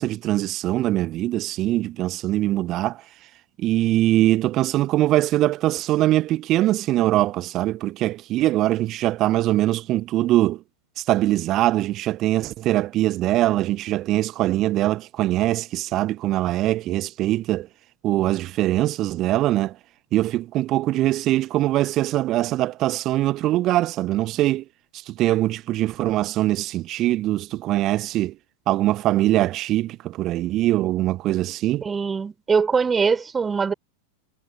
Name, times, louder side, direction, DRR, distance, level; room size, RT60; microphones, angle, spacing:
voice 1, 0.0-3.0 3.6-10.6 11.0-17.7 18.0-19.7 20.1-24.6 25.1-28.3 28.7-31.8, right 15 dB, 35° right, 1.4 m, -22 dB
voice 2, 31.8-33.7, right 5 dB, 15° right, 6.2 m, -22 dB
figure-of-eight pair, 90°, 0 cm